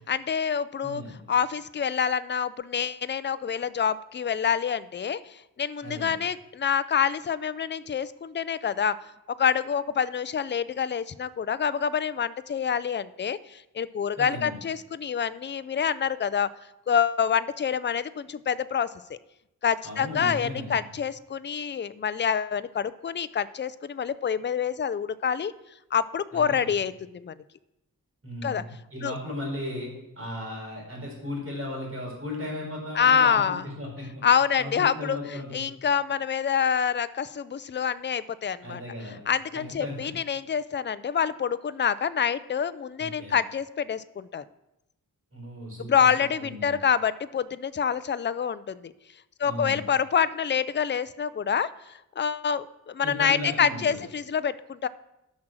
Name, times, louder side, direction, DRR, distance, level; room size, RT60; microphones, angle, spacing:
voice 1, 0.1-1.0 1.3-5.2 5.6-8.9 9.4-16.5 16.9-19.2 19.6-25.5 25.9-27.3 28.4-28.6 29.0-29.1 33.0-33.7 34.2-38.8 39.3-44.4 45.8-48.9 49.4-51.7 52.2-54.9, left 7 dB, 35° left, 15 dB, 0.4 m, -26 dB
voice 2, 0.8-1.2 5.8-6.1 14.2-14.6 19.8-20.8 26.3-26.7 28.2-29.9 30.2-34.2 34.6-35.6 38.6-39.2 39.5-40.1 43.0-43.4 45.3-46.7 49.4-49.8 53.0-54.0, left 1 dB, 40° right, -1 dB, 4.4 m, -36 dB
11.5 x 6.3 x 6.0 m, 0.88 s
wide cardioid pair, 110°, 35 cm